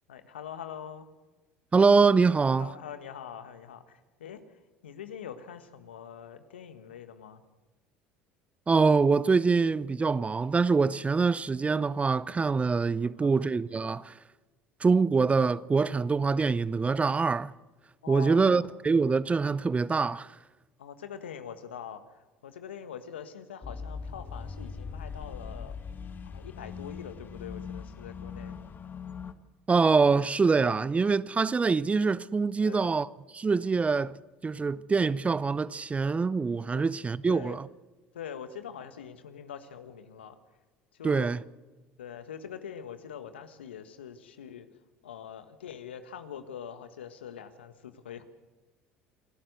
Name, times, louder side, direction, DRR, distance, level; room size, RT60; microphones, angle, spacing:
voice 1, 0.1-1.1 2.5-7.4 13.2-13.3 18.0-18.7 20.8-25.8 26.2-28.6 32.6-32.9 36.7-36.8 37.3-37.6 38.1-40.4 40.9-41.3 42.0-44.7 45.0-48.2, left 8 dB, 90° left, 1.5 m, -43 dB
voice 2, 1.7-2.7 8.7-14.1 14.8-17.5 18.1-20.3 29.7-33.1 33.3-34.2 34.4-37.6 41.0-41.4, right 4 dB, 20° right, 0.6 m, -24 dB
sound 1, 23.6-29.3, left 5 dB, 35° left, 1.7 m, -40 dB
28.0 x 12.5 x 7.9 m
hypercardioid pair, 70°, 6 cm